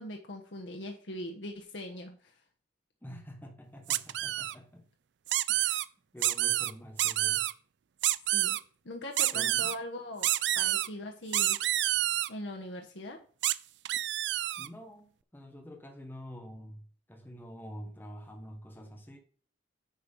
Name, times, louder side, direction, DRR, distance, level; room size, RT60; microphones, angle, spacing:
voice 1, 0.0-2.3 8.3-8.6 8.8-11.6 12.3-13.2, left 1 dB, 75° left, 1.2 m, -41 dB
voice 2, 3.0-4.9 5.5-5.8 6.1-7.4 9.3-9.8 14.6-19.2, equal, 10° left, 1.4 m, -47 dB
sound 1, 3.9-4.5 5.3-5.8 6.2-6.7 7.0-7.5 8.0-8.6 9.2-9.8 10.2-10.9 11.3-12.3 13.4-13.5 13.9-14.7, right 14 dB, 70° right, 0.4 m, -28 dB
9.3 x 4.7 x 5.4 m
head